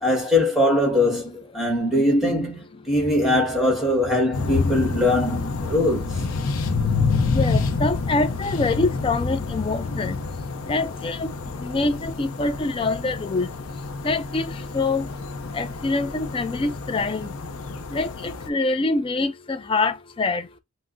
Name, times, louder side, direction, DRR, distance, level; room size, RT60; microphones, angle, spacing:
voice 1, 0.0-6.2, left 1 dB, ahead, 1.4 m, -21 dB
sound 1, 4.3-18.5, left 4 dB, 85° left, 0.5 m, -28 dB
voice 2, 7.2-10.2 10.7-13.5 14.0-15.1 15.5-17.4 17.9-20.5, left 3 dB, 25° left, 0.3 m, -25 dB
5.8 x 2.0 x 2.5 m
head